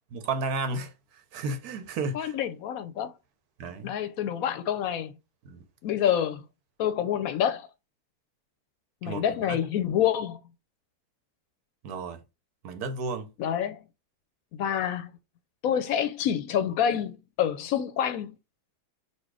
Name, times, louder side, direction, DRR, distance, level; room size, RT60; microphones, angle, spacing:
voice 1, 0.1-0.9 1.3-2.3 3.6-3.9 5.4-5.6 9.0-9.6 11.8-12.2 12.6-13.3, right 3 dB, 75° right, 1.3 m, -32 dB
voice 2, 2.1-3.1 3.8-5.1 5.8-6.4 6.8-7.7 9.0-10.4 13.4-13.8 14.5-15.1 15.6-18.4, left 9 dB, 70° left, 0.9 m, -27 dB
4.3 x 2.5 x 4.7 m
omnidirectional pair, 1.7 m